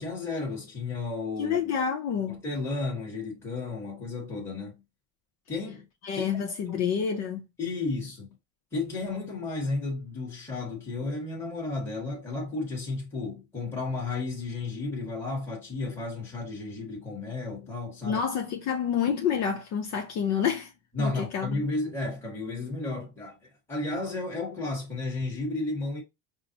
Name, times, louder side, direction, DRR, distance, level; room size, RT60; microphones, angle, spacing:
voice 1, 0.0-1.7 2.3-4.8 5.5-5.9 6.1-6.3 6.7-6.8 7.6-8.4 8.7-18.2 20.9-23.4 23.7-26.0, left 3 dB, 5° left, 1.2 m, -33 dB
voice 2, 1.4-2.4 6.0-7.4 18.0-20.7 21.0-21.6, left 7 dB, 40° left, 0.6 m, -28 dB
5.6 x 2.0 x 2.8 m
supercardioid pair, 125°, 41 cm